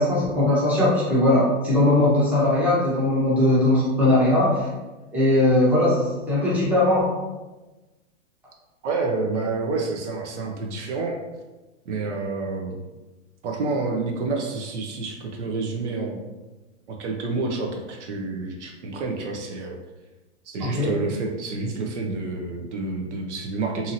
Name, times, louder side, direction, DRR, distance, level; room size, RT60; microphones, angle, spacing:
voice 1, 0.0-4.7 5.1-7.1 20.6-20.9, left 1 dB, 5° right, -9 dB, 0.8 m, -20 dB
voice 2, 8.8-11.2 11.9-12.8 13.4-16.2 16.9-19.8 20.4-23.9, right 3 dB, 70° right, 1 dB, 0.7 m, -28 dB
2.8 x 2.7 x 2.6 m, 1.1 s
hypercardioid pair, 145°, 37 cm